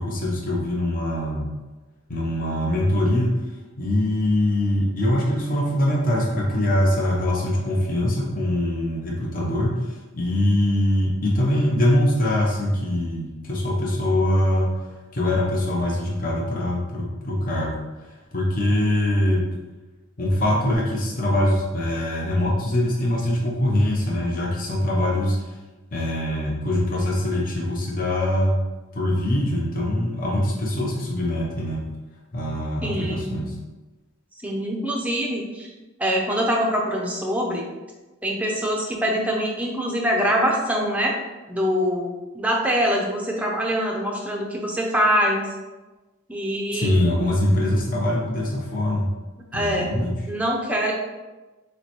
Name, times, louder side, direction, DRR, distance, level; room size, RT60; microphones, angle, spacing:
voice 1, 0.0-1.5 2.1-3.4 3.8-17.8 18.1-19.4 20.2-25.6 25.9-28.6 28.9-31.8 32.3-33.5 46.7-49.1 49.5-50.2, left 1 dB, 40° left, -4 dB, 0.8 m, -23 dB
voice 2, 32.8-33.4 34.4-35.7 36.0-37.6 38.2-41.2 41.5-45.5 46.3-46.9 49.5-49.9 50.3-50.9, equal, 5° right, -2 dB, 0.5 m, -24 dB
6.6 x 2.2 x 3.0 m, 1.2 s
head